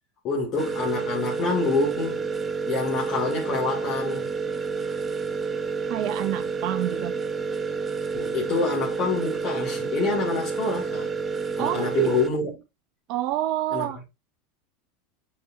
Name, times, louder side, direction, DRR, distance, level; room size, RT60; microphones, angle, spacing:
voice 1, 0.2-2.3 2.7-4.3 8.1-11.1 11.6-12.5 13.7-14.0, left 4 dB, 45° left, 2.4 m, -27 dB
sound 1, 0.6-12.3, right 4 dB, 25° right, 0.7 m, -29 dB
voice 2, 5.9-7.2 11.6-12.1 13.1-14.0, right 14 dB, 55° right, 0.4 m, -27 dB
8.6 x 4.9 x 2.6 m
hypercardioid pair, 95°, 0 cm